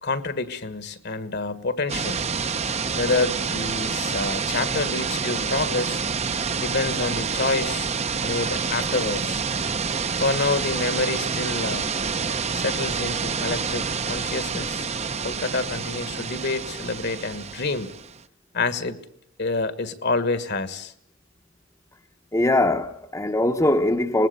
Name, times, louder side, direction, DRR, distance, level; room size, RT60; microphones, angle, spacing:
voice 1, 0.0-2.2 2.9-6.0 6.6-7.9 8.2-9.4 10.2-11.9 12.5-14.9 15.2-17.9 18.5-19.0 19.4-20.9, left 3 dB, 55° left, 1.6 m, -27 dB
sound 1, 1.9-18.2, right 5 dB, 30° right, 0.9 m, -28 dB
voice 2, 22.3-24.3, left 1 dB, 15° left, 1.0 m, -21 dB
25.0 x 20.5 x 6.9 m
head